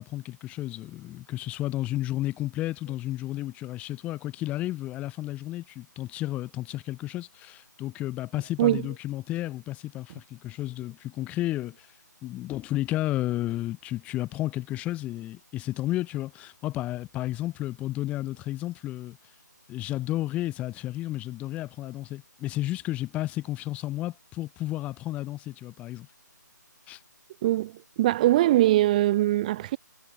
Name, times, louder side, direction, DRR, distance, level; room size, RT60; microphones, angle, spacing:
voice 1, 0.0-11.9 12.2-19.2 19.7-26.1 26.9-27.0, left 15 dB, 15° left, 2.8 m, -32 dB
voice 2, 27.4-27.7 28.0-29.8, right 15 dB, 25° right, 1.2 m, -21 dB
figure-of-eight pair, 150°, 10 cm